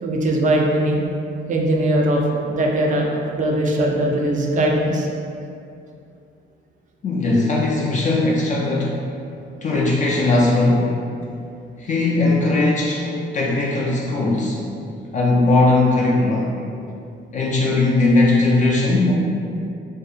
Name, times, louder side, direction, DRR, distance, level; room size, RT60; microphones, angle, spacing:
voice 1, 0.0-1.0 1.5-5.1, right 1 dB, 40° right, 0 dB, 0.4 m, -20 dB
voice 2, 7.0-9.0 9.6-11.0 11.8-14.6 15.1-16.5 17.3-19.1, left 2 dB, 40° left, -4 dB, 0.4 m, -18 dB
2.6 x 2.0 x 2.4 m, 2.5 s
cardioid pair, 90°, 20 cm